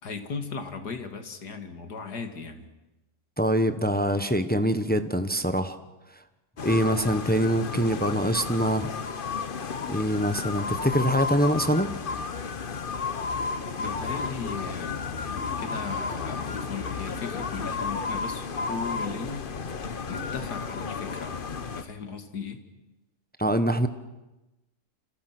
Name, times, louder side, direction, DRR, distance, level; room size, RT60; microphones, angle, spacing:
voice 1, 0.0-2.7 13.8-19.5 20.1-21.3 21.7-22.6, left 4 dB, 80° left, 7 dB, 2.7 m, -37 dB
voice 2, 3.4-5.8 6.6-8.9 9.9-11.9 23.4-23.9, equal, 5° left, 9 dB, 0.9 m, -24 dB
sound 1, 6.6-21.8, left 5 dB, 40° left, 1.0 m, -32 dB
27.5 x 27.5 x 6.1 m, 1.0 s
omnidirectional pair, 1.7 m